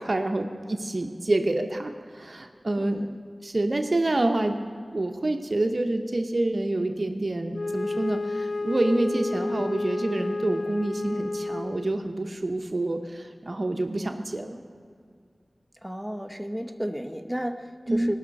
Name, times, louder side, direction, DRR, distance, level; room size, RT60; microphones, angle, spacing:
voice 1, 0.0-3.0 3.4-4.5 4.9-14.6 17.9-18.1, right 2 dB, 55° right, 5 dB, 0.9 m, -27 dB
voice 2, 2.8-3.1 15.8-18.1, equal, ahead, 4 dB, 0.9 m, -33 dB
Wind instrument woodwind instrument, 7.5-12.1, left 2 dB, 60° left, 0.3 m, -31 dB
19.5 x 6.5 x 5.4 m, 2.2 s
wide cardioid pair, 50°, 0 cm